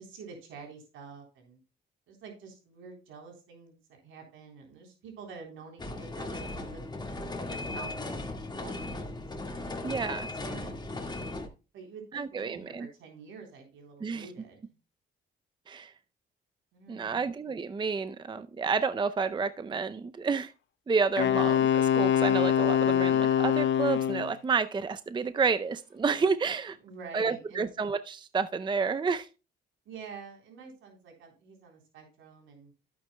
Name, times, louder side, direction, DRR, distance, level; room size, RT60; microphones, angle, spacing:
voice 1, 0.0-1.6 2.1-10.8 11.7-14.7 16.7-17.3 21.2-21.5 26.8-27.8 29.9-32.7, right 5 dB, 85° right, 2 dB, 3.7 m, -48 dB
sound 1, 5.8-11.5, left 2 dB, 20° left, 1.8 m, -37 dB
voice 2, 9.8-10.3 12.1-12.9 14.0-14.3 15.7-15.9 16.9-20.5 20.9-21.6 21.9-26.8 27.1-29.3, right 5 dB, 25° right, 12 dB, 0.5 m, -30 dB
Wind instrument woodwind instrument, 21.2-24.3, left 9 dB, 70° left, 0.8 m, -24 dB
12.0 x 8.7 x 2.2 m, 0.31 s
cardioid pair, 90°, 20 cm